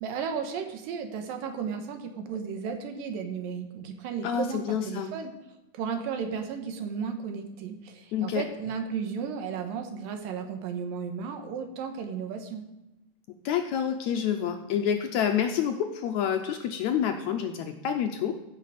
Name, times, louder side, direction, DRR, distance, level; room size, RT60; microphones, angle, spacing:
voice 1, 0.0-5.3 5.7-12.6, right 6 dB, 90° right, 6 dB, 2.8 m, -34 dB
voice 2, 4.2-5.1 8.1-8.4 13.5-18.4, left 8 dB, 75° left, 5 dB, 1.7 m, -28 dB
15.0 x 6.5 x 5.0 m, 0.98 s
omnidirectional pair, 3.9 m